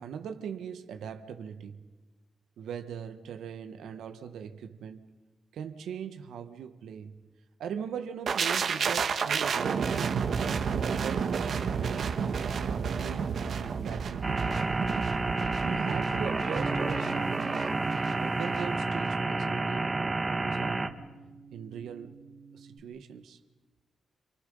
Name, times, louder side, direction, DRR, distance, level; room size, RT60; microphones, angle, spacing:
voice 1, 0.0-1.8 2.6-5.1 5.5-7.2 7.6-10.3 10.6-12.1 12.6-14.7 15.6-17.7 18.2-21.0 21.5-22.2 22.5-23.4, right 7 dB, 85° right, 1.4 m, -40 dB
sound 1, 8.3-18.1 18.4-18.6, right 6 dB, 65° right, 1.6 m, -31 dB
sound 2, 14.2-20.9, right 3 dB, 30° right, 1.7 m, -30 dB
Bass guitar, 16.5-22.8, right 4 dB, 45° right, 1.6 m, -42 dB
28.0 x 27.5 x 5.5 m
cardioid pair, 75°, 0 cm